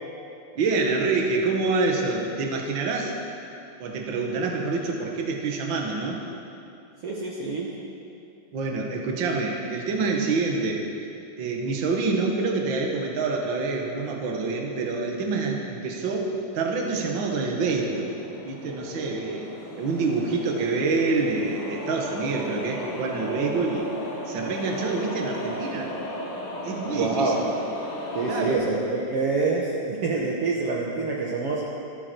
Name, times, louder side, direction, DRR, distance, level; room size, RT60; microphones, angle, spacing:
voice 1, 0.5-3.1 3.8-6.2 8.5-10.8 11.4-18.1 18.4-19.5 19.8-23.9 24.3-25.9 26.6-27.4 28.3-28.7, right 3 dB, 65° right, 1 dB, 1.1 m, -26 dB
voice 2, 7.0-7.7 26.9-27.4 28.1-31.7, right 3 dB, 85° right, -3 dB, 1.3 m, -26 dB
sound 1, 16.1-28.5, left 1 dB, 45° left, 1.9 m, -36 dB
25.5 x 9.9 x 4.6 m, 2.6 s
omnidirectional pair, 4.8 m